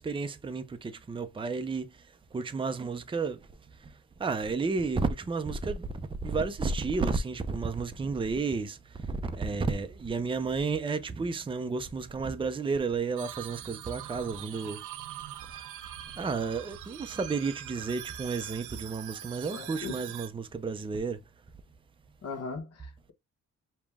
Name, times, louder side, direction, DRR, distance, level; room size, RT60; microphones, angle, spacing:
voice 1, 0.0-2.0 2.3-3.4 3.8-3.9 4.2-14.8 16.2-21.2, right 4 dB, 15° right, 0.5 m, -32 dB
sound 1, 13.2-20.3, right 11 dB, 85° right, 0.6 m, -43 dB
voice 2, 19.5-20.0 22.2-23.1, left 4 dB, 55° left, 1.2 m, -39 dB
5.2 x 2.3 x 3.5 m
cardioid pair, 90°, 30 cm